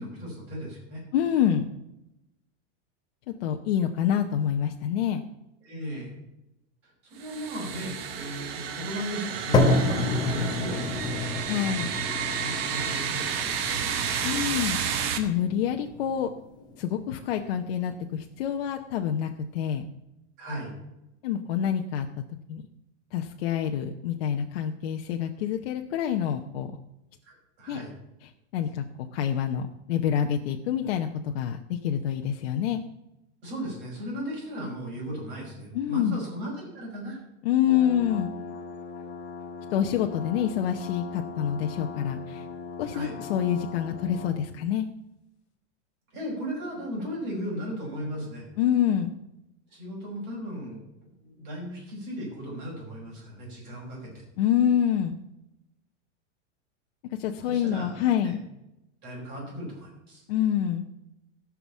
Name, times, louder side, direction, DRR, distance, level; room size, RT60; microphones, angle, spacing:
voice 1, 0.0-1.0 5.6-6.2 7.1-11.3 12.4-14.4 20.4-20.7 27.2-27.9 33.4-37.2 42.9-43.2 46.1-48.4 49.7-54.2 57.5-58.3 59.0-60.2, equal, 30° right, -2 dB, 5.6 m, -36 dB
voice 2, 1.1-1.7 3.3-5.2 11.5-11.9 14.2-16.3 16.8-19.9 21.2-22.1 22.5-22.6 23.1-26.7 27.7-27.8 28.2-32.8 35.7-36.2 37.4-38.3 39.7-42.5 42.8-44.9 48.6-49.1 54.4-55.2 57.2-58.4 60.3-60.8, left 9 dB, 55° left, 3 dB, 0.9 m, -27 dB
sound 1, 7.2-15.2, right 8 dB, 55° right, 1.5 m, -31 dB
sound 2, 9.5-17.6, left 2 dB, 10° left, 1.0 m, -29 dB
sound 3, 37.7-44.4, left 5 dB, 35° left, 1.8 m, -39 dB
15.0 x 6.1 x 7.2 m, 0.90 s
supercardioid pair, 180°, 35 cm